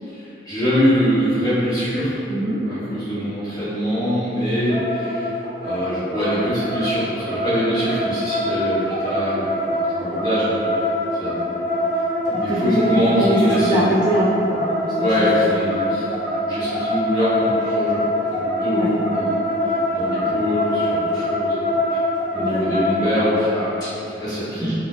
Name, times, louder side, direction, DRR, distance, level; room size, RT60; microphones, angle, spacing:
voice 1, 0.1-2.3 2.6-5.3 5.6-10.9 11.2-11.6 12.3-13.9 14.9-16.0 16.4-19.4 19.9-21.6 21.9-22.0 22.3-24.8, equal, 20° left, -12 dB, 1.0 m, -23 dB
sound 1, 4.7-23.3, left 1 dB, 45° left, 0.6 m, -24 dB
voice 2, 12.5-12.8 13.2-15.6 18.7-18.9 22.3-22.8 24.6-24.7, equal, 25° right, -9 dB, 0.3 m, -23 dB
3.8 x 2.5 x 2.3 m, 2.8 s
head